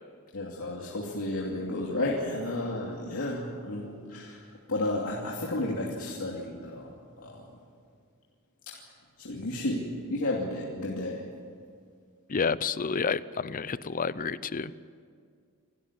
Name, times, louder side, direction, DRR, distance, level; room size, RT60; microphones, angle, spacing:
voice 1, 0.3-4.4 4.7-6.9 7.2-7.4 9.2-11.2, left 1 dB, 75° left, -3 dB, 2.6 m, -32 dB
voice 2, 12.3-14.7, left 5 dB, 40° left, 16 dB, 0.6 m, -30 dB
27.5 x 13.0 x 9.9 m, 2.1 s
head